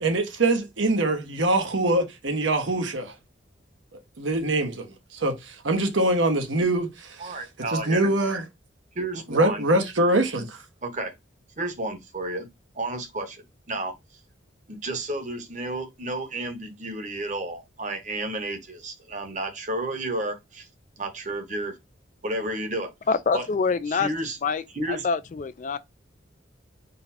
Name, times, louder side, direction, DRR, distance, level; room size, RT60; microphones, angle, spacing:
voice 1, 0.0-3.1 4.2-7.3 7.7-8.4 9.3-10.6, right 2 dB, 80° right, 1.0 m, -24 dB
voice 2, 7.2-8.1 8.9-9.7 10.8-11.1 11.6-12.5 12.7-13.9 14.7-20.7 21.0-21.8 22.2-22.9 23.3-23.5 23.9-24.4 24.7-25.1, right 2 dB, 40° right, 0.9 m, -31 dB
voice 3, 23.1-24.1 24.4-24.6 24.9-25.8, left 5 dB, 40° left, 0.3 m, -25 dB
4.0 x 2.2 x 4.1 m
head